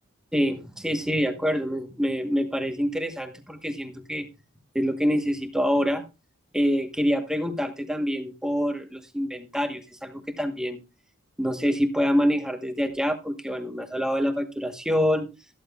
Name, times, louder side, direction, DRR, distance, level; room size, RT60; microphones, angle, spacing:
voice 1, 0.3-4.3 4.7-6.0 6.5-10.8 11.4-15.3, equal, 5° right, 7 dB, 1.1 m, -26 dB
14.0 x 11.5 x 2.3 m, 0.29 s
head